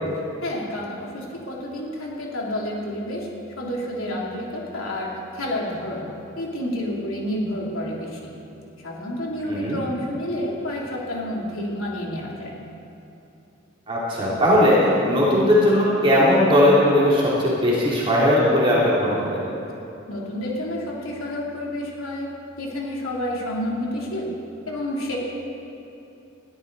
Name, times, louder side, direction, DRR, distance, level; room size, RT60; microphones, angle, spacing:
voice 1, 0.4-3.3 3.6-6.0 6.4-8.3 8.8-12.6 20.1-22.3 22.6-24.3 24.7-25.2, left 1 dB, 85° left, -3 dB, 3.1 m, -29 dB
voice 2, 9.4-9.8 13.9-19.5, left 1 dB, 25° right, -7 dB, 3.0 m, -18 dB
20.5 x 13.0 x 4.1 m, 2.9 s
head